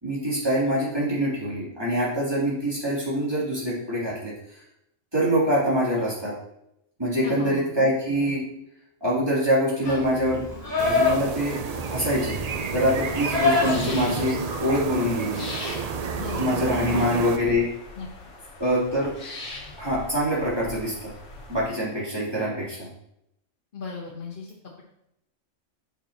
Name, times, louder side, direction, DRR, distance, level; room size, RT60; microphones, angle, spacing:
voice 1, 0.0-4.6 5.1-6.3 7.0-8.4 9.0-10.4 10.8-11.6 11.9-12.4 12.7-15.5 16.4-17.7 18.6-19.1 19.8-21.1 21.5-22.9, equal, 20° right, -8 dB, 3.1 m, -24 dB
voice 2, 7.2-7.8 16.2-16.6 16.9-17.1 18.0-18.1 23.7-24.5, left 5 dB, 45° left, -5 dB, 1.2 m, -35 dB
Livestock farm animals working animals, 9.8-15.0, left 3 dB, 15° left, 2.5 m, -27 dB
sound 1, 10.8-17.4, right 5 dB, 55° right, 0.4 m, -31 dB
sound 2, 12.9-21.6, left 2 dB, 65° left, 1.5 m, -41 dB
7.1 x 6.8 x 2.9 m, 0.81 s
omnidirectional pair, 1.3 m